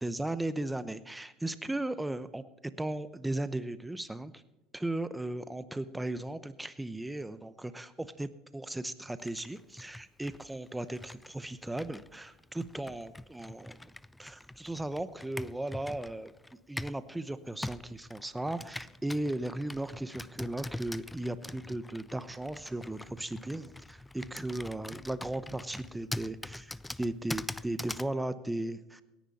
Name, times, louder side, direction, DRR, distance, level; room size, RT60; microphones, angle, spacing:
voice 1, 0.0-2.4 2.8-4.4 4.7-13.9 14.2-16.3 16.7-29.0, right 1 dB, 5° right, 14 dB, 0.8 m, -36 dB
Computer keyboard, 9.2-17.1 17.6-28.1, left 1 dB, 10° left, 0.4 m, -44 dB
17.5 x 10.5 x 4.2 m, 0.99 s
supercardioid pair, 95°, 0 cm